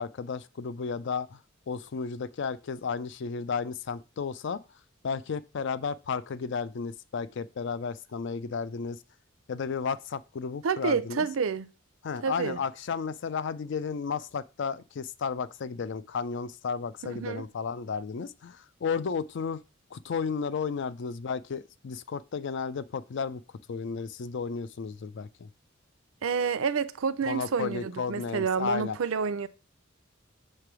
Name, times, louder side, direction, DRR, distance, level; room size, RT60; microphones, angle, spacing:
voice 1, 0.0-1.4 1.7-4.6 5.0-9.0 9.5-11.3 12.0-19.6 19.9-23.4 23.7-25.5 27.2-29.0, left 5 dB, 60° left, 0.4 m, -33 dB
voice 2, 10.6-11.7 12.2-12.6 17.0-17.4 26.2-29.5, right 6 dB, 75° right, 0.5 m, -29 dB
6.7 x 3.3 x 5.9 m
head